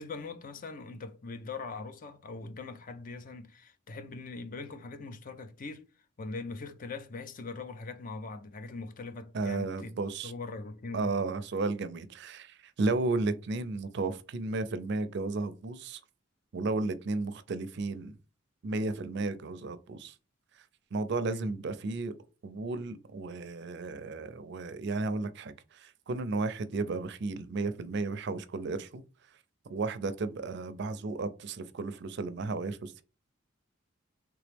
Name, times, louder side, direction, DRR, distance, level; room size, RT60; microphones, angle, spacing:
voice 1, 0.0-5.9 6.2-9.9 10.2-11.2 21.3-21.5, left 3 dB, 40° left, 0.5 m, -41 dB
voice 2, 9.3-10.3 10.9-16.0 16.5-18.1 18.6-20.1 20.9-22.1 22.4-29.0 29.7-33.0, right 3 dB, 60° right, 0.4 m, -33 dB
3.4 x 2.9 x 3.3 m
head